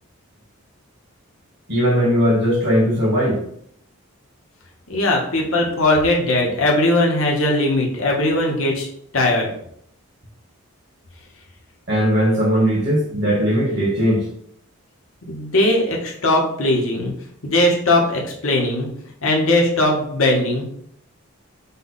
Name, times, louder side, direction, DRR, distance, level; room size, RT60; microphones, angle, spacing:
voice 1, 1.7-3.4 11.9-14.3, equal, 50° right, -3 dB, 1.6 m, -18 dB
voice 2, 4.9-8.9 9.1-9.5 15.2-17.1 17.4-18.9 19.2-20.6, left 1 dB, 65° left, -1 dB, 1.0 m, -19 dB
5.4 x 2.3 x 4.0 m, 0.69 s
head